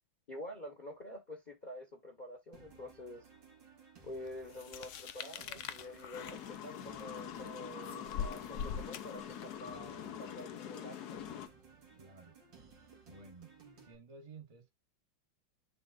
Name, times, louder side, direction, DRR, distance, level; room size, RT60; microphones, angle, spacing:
voice 1, 0.3-3.3 4.0-11.2, left 1 dB, 25° left, 1.3 m, -48 dB
sound 1, 2.5-13.9, right 5 dB, 70° right, 2.6 m, -59 dB
sound 2, 4.5-9.7, left 7 dB, 85° left, 0.6 m, -43 dB
sound 3, 6.1-11.5, left 9 dB, 60° left, 1.3 m, -45 dB
voice 2, 11.9-12.4 13.1-14.7, right 4 dB, 20° right, 1.3 m, -54 dB
10.5 x 3.8 x 2.5 m
omnidirectional pair, 2.1 m